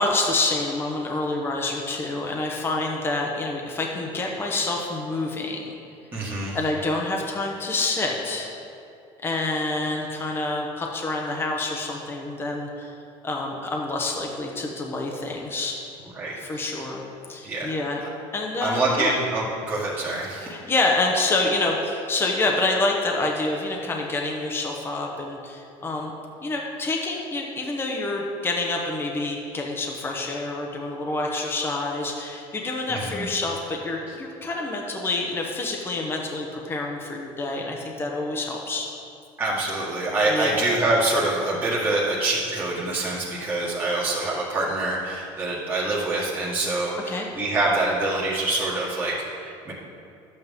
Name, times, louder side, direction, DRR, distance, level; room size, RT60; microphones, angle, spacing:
voice 1, 0.0-5.7 6.5-8.5 9.2-12.9 13.2-15.8 16.4-17.0 17.3-18.0 18.3-19.1 20.4-26.1 26.4-38.9 40.3-40.6 47.1-47.3, left 2 dB, 20° left, 0 dB, 1.0 m, -27 dB
voice 2, 6.1-6.6 16.1-16.6 17.4-17.7 18.6-20.5 32.9-33.3 39.4-49.7, right 2 dB, 15° right, -7 dB, 1.7 m, -25 dB
11.5 x 8.1 x 3.6 m, 2.6 s
cardioid pair, 125°, 12 cm